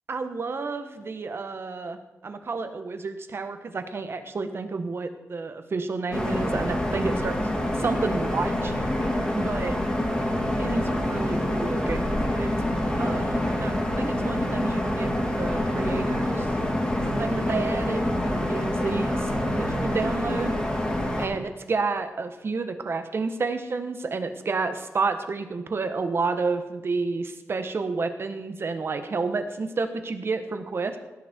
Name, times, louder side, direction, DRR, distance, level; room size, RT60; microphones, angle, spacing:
voice 1, 0.1-7.4 7.7-8.7 9.3-9.8 10.6-12.5 13.0-16.5 17.2-19.3 19.6-20.6 21.2-31.0, right 4 dB, 50° right, 8 dB, 1.4 m, -30 dB
sound 1, 6.1-21.3, left 1 dB, 15° left, 3.2 m, -26 dB
18.0 x 10.0 x 4.5 m, 1.1 s
wide cardioid pair, 110°, 5 cm